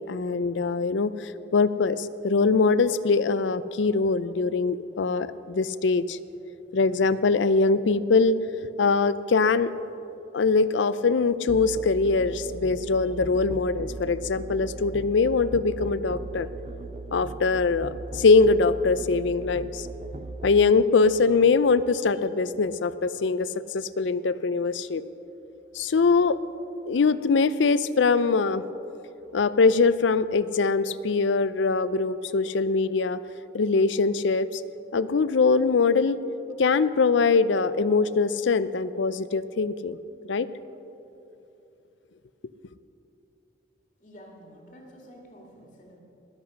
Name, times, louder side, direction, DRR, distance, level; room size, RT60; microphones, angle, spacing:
voice 1, 0.0-6.2 6.7-8.4 8.8-9.7 10.3-16.5 17.1-19.9 20.4-23.5 23.7-25.0 25.7-26.4 26.9-28.6 29.3-33.2 33.5-34.6 34.9-36.2 36.6-40.0 40.3-40.5, left 4 dB, 85° left, 15 dB, 0.5 m, -22 dB
Musical instrument, 11.5-20.7, right 3 dB, 35° right, 0.4 m, -38 dB
voice 2, 44.0-46.0, equal, 45° left, 0 dB, 2.0 m, -49 dB
20.0 x 8.1 x 6.4 m, 2.9 s
head